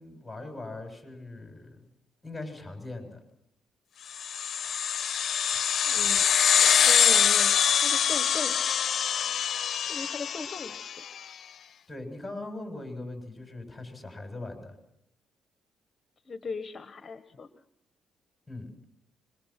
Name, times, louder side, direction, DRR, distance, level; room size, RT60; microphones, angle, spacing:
voice 1, 0.0-1.8 2.2-3.2 11.9-14.8 18.5-18.7, left 2 dB, 10° left, 4 dB, 7.4 m, -40 dB
sound 1, 4.2-11.0, left 8 dB, 55° left, 0.8 m, -24 dB
voice 2, 5.8-8.8 9.9-11.0 16.2-17.6, left 4 dB, 35° left, 9 dB, 1.3 m, -39 dB
26.0 x 23.0 x 5.9 m, 0.78 s
cardioid pair, 100°, 0 cm